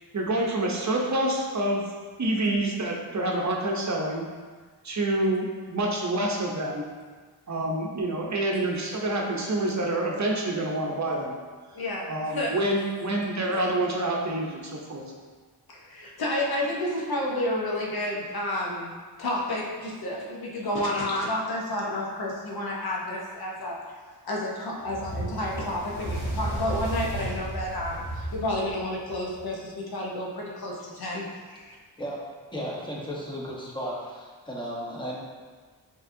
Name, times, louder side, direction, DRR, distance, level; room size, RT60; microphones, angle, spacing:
voice 1, 0.1-1.8 2.2-4.2 4.8-6.8 7.5-11.3 12.1-15.0, right 1 dB, 45° right, -1 dB, 0.7 m, -27 dB
voice 2, 11.7-12.5 15.7-18.9 19.2-23.8 24.2-31.8, left 1 dB, 65° left, -3 dB, 0.9 m, -30 dB
Fire, 24.8-29.4, right 1 dB, 85° left, 1.3 m, -33 dB
voice 3, 32.5-35.2, equal, 10° left, -4 dB, 0.9 m, -34 dB
5.1 x 2.9 x 2.6 m, 1.5 s
cardioid pair, 65°, 40 cm